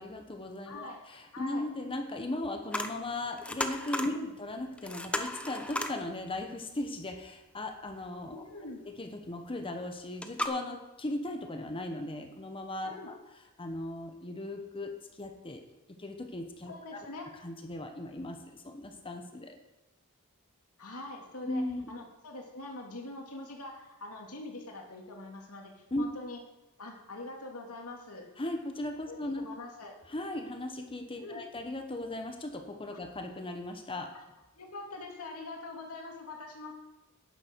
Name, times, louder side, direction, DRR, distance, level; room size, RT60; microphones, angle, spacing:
voice 1, 0.0-8.4 8.8-13.2 13.6-14.9 15.2-15.6 16.0-17.0 17.4-19.5 21.4-21.9 25.9-26.1 28.4-29.5 30.1-34.1, left 1 dB, 25° left, 5 dB, 1.1 m, -37 dB
voice 2, 0.6-1.0 1.3-1.7 4.1-4.3 8.3-8.8 12.8-13.1 16.7-17.2 20.8-26.4 26.8-28.3 29.1-29.9 31.2-31.4 34.1-34.2 34.6-36.7, left 2 dB, 75° left, 0 dB, 2.5 m, -43 dB
sound 1, 2.7-2.9 3.2-4.1 4.5-4.6 4.8-6.0 9.7-9.8 10.2-10.5, left 1 dB, 5° left, 0.7 m, -34 dB
11.5 x 10.0 x 4.6 m, 0.96 s
head